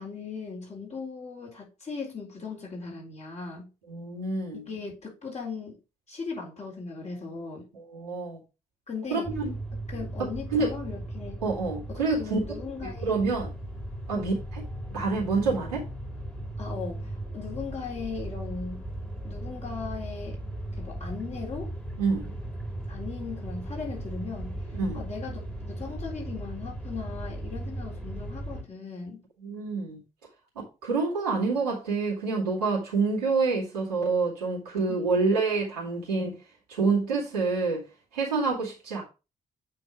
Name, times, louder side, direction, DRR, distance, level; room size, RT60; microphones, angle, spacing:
voice 1, 0.0-3.7 4.5-5.8 6.1-7.7 8.9-9.3 9.9-11.4 11.9-13.2 14.1-14.4 16.6-18.9 19.2-20.4 20.8-21.7 22.9-24.6 24.9-25.4 25.7-29.2 34.9-35.1, left 4 dB, 35° left, 4.0 m, -38 dB
voice 2, 3.9-4.6 7.7-8.4 9.1-9.5 10.5-10.7 11.4-12.4 12.8-13.5 14.1-14.6 14.9-15.8 22.0-22.3 24.8-25.0 29.4-30.0 30.6-36.4 36.7-37.8 38.1-39.0, right 4 dB, 85° right, 2.3 m, -27 dB
sound 1, 9.2-28.6, right 1 dB, 5° left, 2.7 m, -37 dB
8.5 x 3.5 x 4.8 m
figure-of-eight pair, 40°, 20 cm